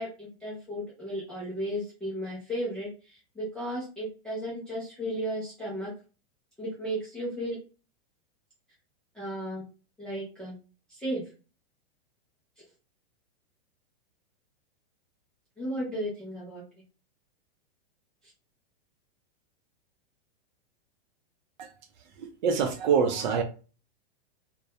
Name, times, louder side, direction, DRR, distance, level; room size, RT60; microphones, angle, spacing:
voice 1, 0.0-5.9 6.6-7.6 9.1-9.6 10.0-10.6 10.9-11.3 15.6-16.6, equal, 5° left, 0.3 m, -34 dB
voice 2, 22.2-23.4, right 6 dB, 50° right, 0.5 m, -25 dB
2.2 x 2.1 x 2.7 m
supercardioid pair, 155°, 31 cm